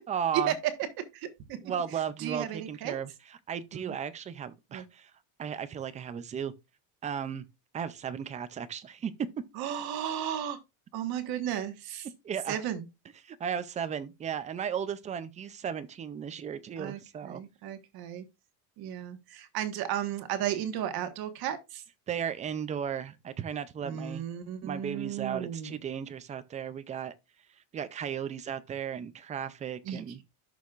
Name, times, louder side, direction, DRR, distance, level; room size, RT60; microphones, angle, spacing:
voice 1, 0.1-0.5 1.6-5.1 5.4-6.5 7.0-7.4 7.7-9.1 12.2-12.6 13.2-17.4 22.1-24.2 24.6-27.1 27.7-30.2, right 8 dB, 15° right, 0.3 m, -35 dB
voice 2, 1.1-1.6 2.2-3.0 3.7-3.9 4.7-4.8 9.6-10.6 10.9-12.1 12.5-12.8 16.8-18.2 18.8-21.8 23.8-25.7 29.8-30.0, right 10 dB, 45° right, 1.5 m, -34 dB
12.5 x 6.5 x 2.4 m
cardioid pair, 150°, 49 cm